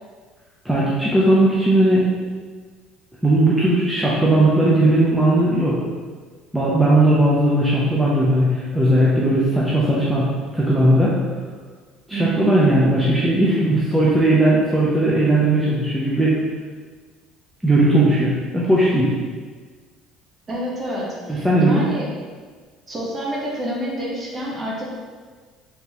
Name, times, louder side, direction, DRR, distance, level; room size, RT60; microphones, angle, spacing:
voice 1, 0.6-2.1 3.2-5.8 6.5-10.2 10.5-11.2 12.1-16.4 17.6-19.1 21.3-21.8, right 1 dB, 5° right, -7 dB, 0.7 m, -17 dB
voice 2, 12.1-12.5 20.5-22.1 22.9-24.9, right 1 dB, 30° right, -4 dB, 1.2 m, -28 dB
3.9 x 3.8 x 2.9 m, 1.5 s
cardioid pair, 115°, 0 cm